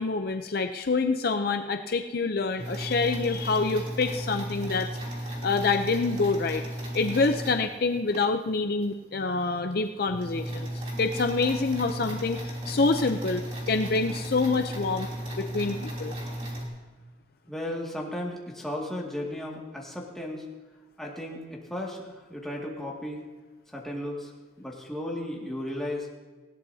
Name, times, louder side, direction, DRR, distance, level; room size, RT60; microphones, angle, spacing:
voice 1, 0.0-5.0 5.4-6.6 6.9-10.7 11.0-15.1 15.4-16.1, left 3 dB, 55° left, 7 dB, 0.6 m, -26 dB
sound 1, 2.6-8.2 8.8-8.9 9.3-9.4 9.7-16.6, right 1 dB, 35° right, 3.1 m, -35 dB
voice 2, 17.5-20.5 21.0-23.3 23.7-24.3 24.6-26.1, left 1 dB, ahead, -3 dB, 2.1 m, -35 dB
19.5 x 16.5 x 2.8 m, 1.3 s
head